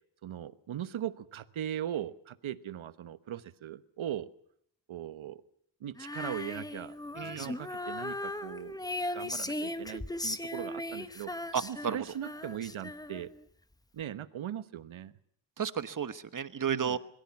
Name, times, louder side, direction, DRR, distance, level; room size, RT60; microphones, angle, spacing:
voice 1, 0.2-4.3 4.9-5.4 5.8-7.0 7.2-11.3 11.6-13.3 13.9-15.1 16.7-17.0, right 10 dB, 90° right, 13 dB, 1.2 m, -39 dB
Female singing, 6.0-13.4, left 1 dB, 10° left, 1.0 m, -38 dB
voice 2, 7.2-7.5 11.5-12.0 15.6-17.0, right 7 dB, 40° right, 12 dB, 1.2 m, -33 dB
26.0 x 22.5 x 6.0 m, 0.70 s
wide cardioid pair, 145°, 47 cm